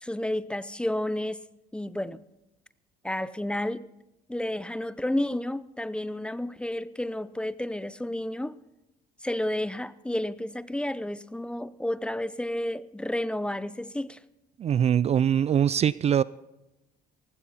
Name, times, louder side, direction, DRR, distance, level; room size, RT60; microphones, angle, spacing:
voice 1, 0.0-1.4 1.7-2.2 3.0-3.9 4.3-8.6 9.2-14.2, left 1 dB, 5° left, 0.6 m, -31 dB
voice 2, 14.6-16.2, right 9 dB, 40° right, 0.4 m, -22 dB
18.5 x 16.0 x 4.1 m
cardioid pair, 110°, 17 cm